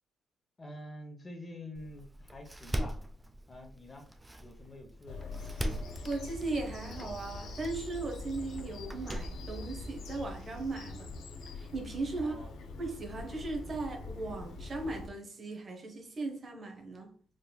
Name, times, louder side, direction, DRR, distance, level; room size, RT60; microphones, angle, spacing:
voice 1, 0.6-3.0 3.5-4.1 4.4-5.4 12.2-12.6, left 1 dB, 25° left, 1.0 m, -47 dB
Door, 1.7-10.7, equal, 15° right, 0.5 m, -42 dB
Bird vocalization bird call bird song, 5.1-15.1, left 2 dB, 70° left, 0.6 m, -43 dB
voice 2, 6.0-11.1 11.5-12.5 12.8-17.1, right 3 dB, 40° right, 0.9 m, -37 dB
3.7 x 3.2 x 2.3 m
cardioid pair, 90°, 0 cm